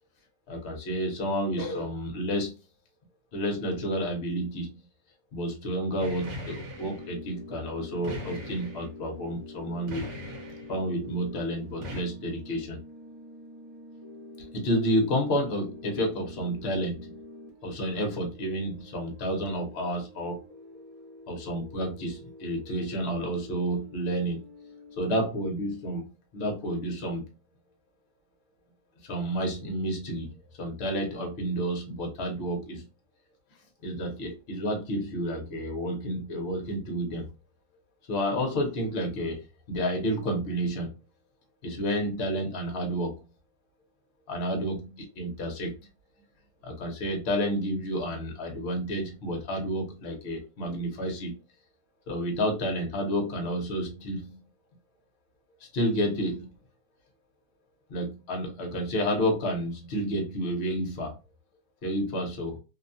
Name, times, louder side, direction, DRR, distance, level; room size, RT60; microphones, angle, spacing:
voice 1, 0.5-2.6 3.3-4.8 5.3-10.1 10.7-12.8 14.4-17.2 17.6-20.4 21.3-24.4 25.0-27.2 29.0-32.8 33.8-37.3 38.1-40.9 41.6-43.2 44.3-45.8 46.6-51.4 52.1-54.4 55.6-56.5 57.9-61.2 61.8-62.6, equal, 50° left, 3 dB, 0.8 m, -30 dB
sound 1, 6.0-7.1 8.0-8.9 9.9-10.7 11.8-12.0, left 1 dB, 70° right, 1.4 m, -39 dB
sound 2, 6.7-25.0, left 2 dB, 30° right, 0.7 m, -47 dB
2.9 x 2.2 x 2.6 m, 0.30 s
omnidirectional pair, 1.8 m